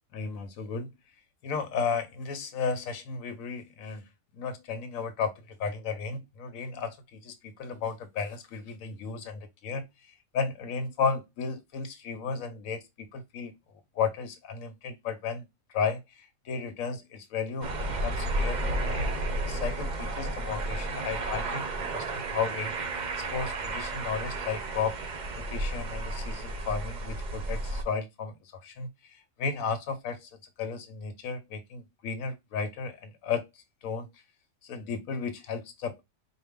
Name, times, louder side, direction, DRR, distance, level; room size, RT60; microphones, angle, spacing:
voice 1, 0.1-0.9 1.4-4.1 4.3-13.5 13.9-19.1 19.4-22.7 23.3-25.0 25.4-34.2 34.6-36.0, left 5 dB, 90° left, 1.2 m, -34 dB
sound 1, 17.6-27.8, right 2 dB, 45° right, 0.6 m, -32 dB
4.5 x 2.3 x 3.5 m
omnidirectional pair, 1.4 m